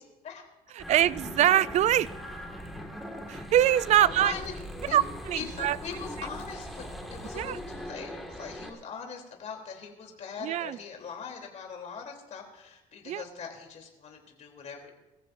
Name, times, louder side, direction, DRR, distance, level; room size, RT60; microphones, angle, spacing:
sound 1, 0.8-8.7, equal, ahead, 1.9 m, -40 dB
voice 1, 0.9-2.1 3.3-4.3 4.9-5.8 7.3-7.6 10.4-10.8 13.1-13.2, right 12 dB, 45° right, 18 dB, 0.4 m, -23 dB
voice 2, 4.0-4.4 4.9-5.0 5.3-6.8 7.1-14.9, left 6 dB, 45° left, 2 dB, 3.3 m, -41 dB
22.5 x 14.0 x 2.6 m, 1.0 s
cardioid pair, 135°, 17 cm